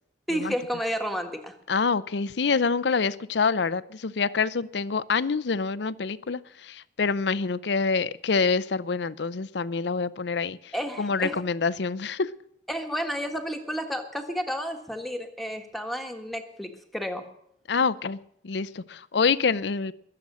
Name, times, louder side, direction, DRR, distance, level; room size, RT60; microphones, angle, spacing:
voice 1, 0.3-1.6 10.7-11.4 12.7-17.2, equal, ahead, 4 dB, 1.5 m, -31 dB
voice 2, 1.7-10.7 11.0-12.3 17.7-18.2 18.4-19.9, left 5 dB, 75° left, 17 dB, 0.6 m, -26 dB
21.0 x 7.8 x 6.2 m, 0.73 s
head